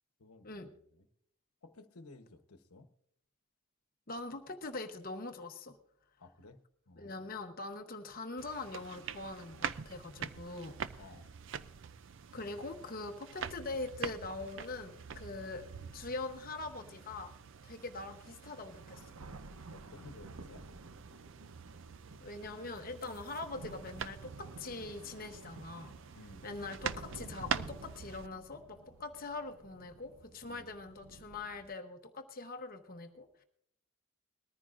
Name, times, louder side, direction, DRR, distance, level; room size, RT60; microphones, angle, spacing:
voice 1, 0.2-1.1 1.6-2.9 6.2-7.3 11.0-11.3 19.7-20.7 26.1-26.5 30.5-30.7, left 2 dB, 85° left, 9 dB, 1.0 m, -55 dB
voice 2, 4.1-5.8 7.0-10.8 12.3-15.7 15.9-17.3 17.6-19.1 22.2-25.9 26.4-33.4, left 3 dB, 40° left, 6 dB, 1.0 m, -43 dB
sound 1, 8.4-28.3, right 7 dB, 55° right, 0.5 m, -45 dB
sound 2, 17.7-31.7, right 2 dB, 85° right, 0.8 m, -53 dB
21.0 x 14.0 x 2.5 m, 0.71 s
head